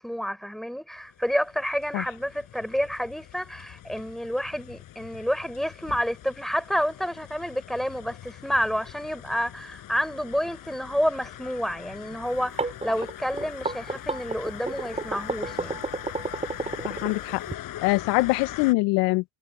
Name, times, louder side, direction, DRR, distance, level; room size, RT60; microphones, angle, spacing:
voice 1, 0.0-15.8, equal, ahead, 6.1 m, -29 dB
sound 1, 1.1-18.7, left 13 dB, 50° left, 7.9 m, -42 dB
sound 2, 12.3-17.5, right 3 dB, 15° right, 4.6 m, -31 dB
voice 2, 16.8-17.4 17.8-19.2, left 23 dB, 75° left, 1.1 m, -23 dB
supercardioid pair, 100°, 41 cm